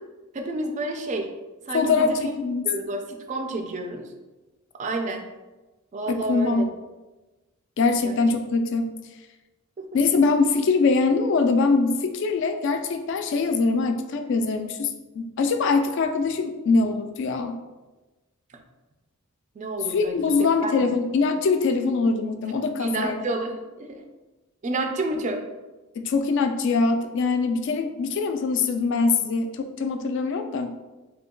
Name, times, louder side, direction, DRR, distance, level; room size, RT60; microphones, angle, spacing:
voice 1, 0.3-1.3 1.7-2.3 2.6-4.1 4.8-5.2 5.9-6.7 8.0-8.2 19.6-20.7 22.8-24.0 24.6-25.4, right 2 dB, 35° right, 4 dB, 0.3 m, -30 dB
voice 2, 1.7-2.7 6.1-6.7 7.8-8.9 9.9-14.9 15.2-17.5 19.9-23.2 26.0-30.8, left 4 dB, 60° left, 7 dB, 0.3 m, -23 dB
2.8 x 2.2 x 3.6 m, 1.1 s
head